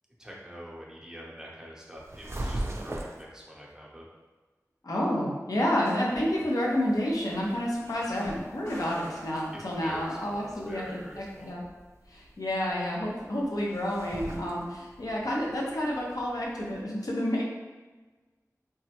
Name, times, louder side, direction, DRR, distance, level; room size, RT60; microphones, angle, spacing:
voice 1, 0.2-4.0 9.5-11.6, equal, 10° right, -4 dB, 0.7 m, -45 dB
sound 1, 2.0-3.3 6.7-16.8, right 1 dB, 45° right, 0.4 m, -42 dB
voice 2, 4.8-10.8 11.2-11.6 12.1-17.4, equal, 80° left, -3 dB, 0.6 m, -29 dB
sound 2, 5.6-11.5, equal, 55° left, 1.1 m, -49 dB
3.4 x 2.1 x 2.8 m, 1.3 s
wide cardioid pair, 50°, 6 cm